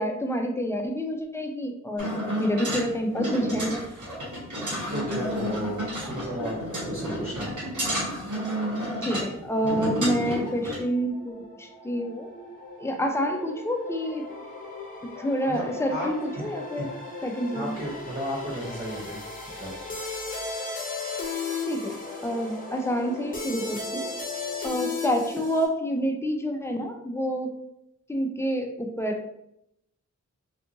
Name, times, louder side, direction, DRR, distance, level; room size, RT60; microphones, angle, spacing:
voice 1, 0.0-2.1 2.4-3.8 9.0-12.3 12.8-14.3 15.2-16.9 17.2-17.8 21.7-24.1 24.6-27.5 28.1-29.3, equal, 10° left, 4 dB, 0.3 m, -28 dB
sound 1, 2.0-10.8, equal, 85° right, 1.3 m, -31 dB
voice 2, 4.9-6.6 6.9-7.5 15.5-16.1 16.4-16.5 16.8-16.9 17.5-19.2 19.6-19.7, equal, 45° right, -8 dB, 1.4 m, -34 dB
sound 2, 9.4-25.6, left 4 dB, 30° left, 0.8 m, -36 dB
2.7 x 2.4 x 2.6 m, 0.80 s
wide cardioid pair, 75°, 29 cm